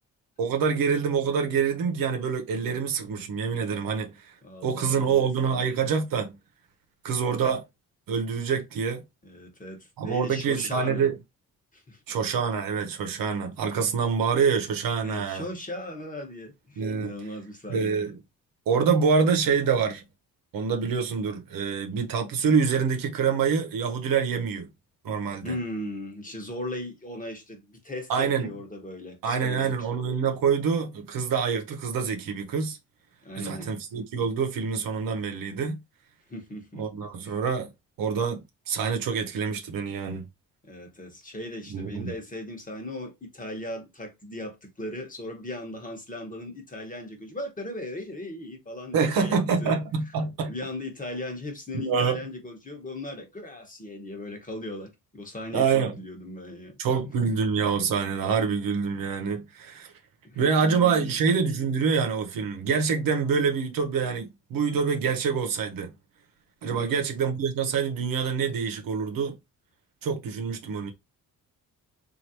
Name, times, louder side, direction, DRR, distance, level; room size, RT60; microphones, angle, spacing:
voice 1, 0.4-4.1 4.6-6.3 7.0-7.6 8.1-9.0 10.0-11.1 12.1-15.4 16.8-17.1 17.7-18.2 18.7-20.0 20.5-24.7 25.0-25.5 28.1-28.5 29.2-32.8 33.4-35.8 36.7-37.7 38.0-40.2 41.7-42.1 48.9-50.5 51.9-52.2 55.5-56.0 56.8-59.9 60.3-65.9 66.6-69.3 70.0-70.9, right 6 dB, 80° right, 0.8 m, -26 dB
voice 2, 4.4-5.3 9.2-11.1 11.7-12.0 15.0-18.1 25.4-29.9 33.2-33.7 36.3-36.9 37.2-37.3 40.6-49.8 50.5-56.8 60.2-61.1 66.6-67.0, left 1 dB, 25° left, 1.1 m, -38 dB
3.1 x 2.5 x 2.8 m
cardioid pair, 80°, 34 cm